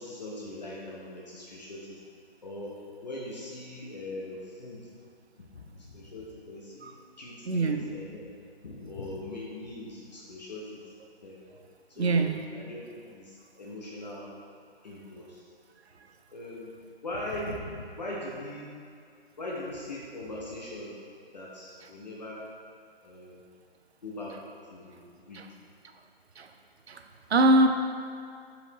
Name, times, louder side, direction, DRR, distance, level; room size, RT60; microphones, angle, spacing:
voice 1, 0.0-2.0 2.4-2.7 3.0-4.9 5.5-8.3 8.6-10.6 11.2-11.4 11.9-12.2 12.5-12.8 13.1-14.3 14.8-15.4 16.3-16.7 17.0-18.7 19.4-20.9 21.3-22.4 23.0-23.4 24.0-24.3 24.7-25.0 25.3-25.4, left 1 dB, 40° left, -5 dB, 0.8 m, -40 dB
voice 2, 7.4-7.9 12.0-12.4 25.3-25.5 26.4-26.5 26.9-27.0 27.3-27.7, right 2 dB, 90° right, 6 dB, 0.7 m, -23 dB
5.1 x 4.8 x 3.9 m, 2.2 s
hypercardioid pair, 170°, 31 cm